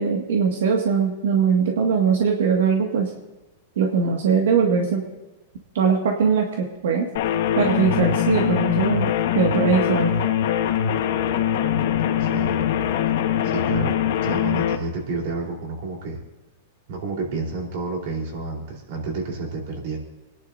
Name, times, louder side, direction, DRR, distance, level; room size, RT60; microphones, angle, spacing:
voice 1, 0.0-3.1 3.8-5.0 5.7-7.1 7.6-10.1, right 6 dB, 85° right, 0 dB, 1.9 m, -21 dB
sound 1, 7.2-14.8, left 9 dB, 60° left, 1.4 m, -22 dB
voice 2, 12.2-12.6 13.4-16.2 16.9-20.0, right 3 dB, 55° right, 0 dB, 3.9 m, -30 dB
28.5 x 11.0 x 2.7 m, 1.1 s
supercardioid pair, 165°, 0 cm